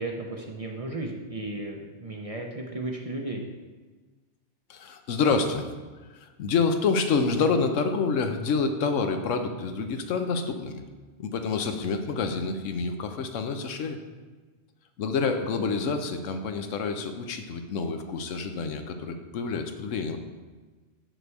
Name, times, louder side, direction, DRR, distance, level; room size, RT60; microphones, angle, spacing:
voice 1, 0.0-3.4, right 2 dB, 35° right, 1 dB, 0.7 m, -34 dB
voice 2, 4.7-5.7 6.1-10.8 11.2-14.0 15.0-20.2, left 4 dB, 85° left, 6 dB, 1.1 m, -27 dB
6.7 x 6.1 x 4.6 m, 1.3 s
omnidirectional pair, 1.3 m